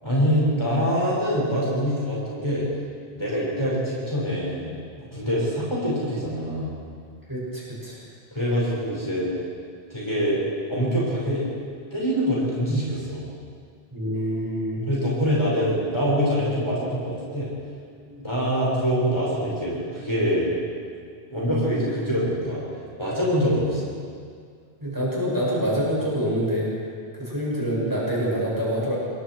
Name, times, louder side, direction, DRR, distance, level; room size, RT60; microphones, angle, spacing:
voice 1, 0.0-2.6 3.1-4.7 5.1-6.7 8.3-9.3 9.9-10.4 10.7-11.5 11.9-13.3 14.9-17.5 18.2-20.5 21.3-22.6 23.0-23.9, equal, 25° left, -7 dB, 6.2 m, -24 dB
voice 2, 7.3-8.0 13.9-14.9 18.0-18.3 24.8-26.7 27.1-29.0, equal, 20° right, -6 dB, 7.1 m, -26 dB
28.5 x 21.5 x 4.8 m, 2.1 s
omnidirectional pair, 1.1 m